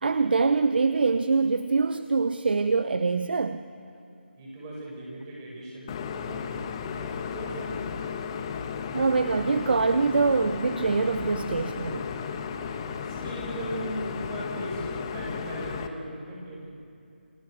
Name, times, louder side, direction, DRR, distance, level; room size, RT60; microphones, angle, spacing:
voice 1, 0.0-3.6 8.9-12.1, right 4 dB, 60° right, 11 dB, 0.8 m, -24 dB
voice 2, 4.4-8.8 13.0-16.7, right 1 dB, 20° right, -3 dB, 7.1 m, -39 dB
sound 1, 5.9-15.9, left 6 dB, 25° left, 1.3 m, -34 dB
29.5 x 21.0 x 6.9 m, 2.7 s
figure-of-eight pair, 160°, 6 cm